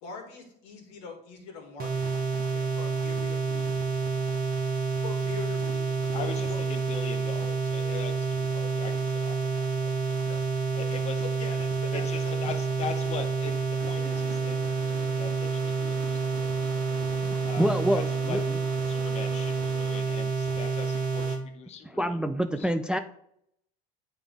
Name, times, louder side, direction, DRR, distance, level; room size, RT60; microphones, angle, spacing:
voice 1, 0.0-4.1 5.0-6.6 10.2-10.4 10.8-12.3, left 4 dB, 70° left, 2 dB, 1.7 m, -43 dB
sound 1, 1.8-21.4, right 4 dB, 45° right, 1.1 m, -29 dB
voice 2, 6.1-9.9 10.7-11.3 11.9-14.6 14.9-16.7 17.4-18.4 18.9-22.2 22.6-22.7, left 6 dB, 30° left, 6 dB, 0.7 m, -40 dB
sound 2, 13.8-20.0, right 8 dB, 75° right, 0.8 m, -45 dB
voice 3, 17.2-18.6 21.9-23.0, right 1 dB, 5° right, 9 dB, 0.3 m, -27 dB
8.6 x 3.4 x 3.6 m, 0.72 s
hypercardioid pair, 75°, 21 cm